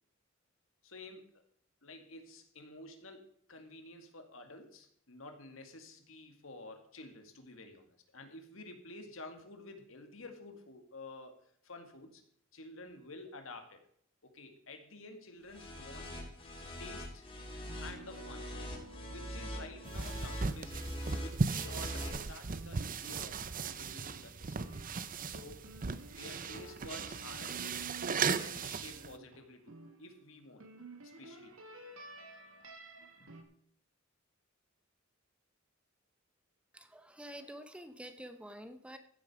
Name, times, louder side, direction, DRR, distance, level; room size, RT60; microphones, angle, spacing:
voice 1, 0.8-1.4 1.8-11.4 11.6-12.2 12.5-13.8 14.2-16.2 16.8-17.3 17.8-18.5 19.0-20.9 21.2-24.7 25.3-25.8 26.1-30.7 31.0-31.6 33.2-33.3, left 2 dB, 75° left, 6 dB, 2.2 m, -51 dB
sound 1, 15.5-22.1, equal, 30° left, 3.8 m, -43 dB
sound 2, 17.7-22.0 22.5-30.2 30.6-33.4, right 2 dB, 80° right, 2.2 m, -53 dB
sound 3, 19.8-29.1, right 5 dB, 40° right, 0.7 m, -37 dB
voice 2, 36.7-39.0, equal, 5° right, 9 dB, 0.9 m, -48 dB
15.0 x 8.5 x 4.9 m, 0.63 s
head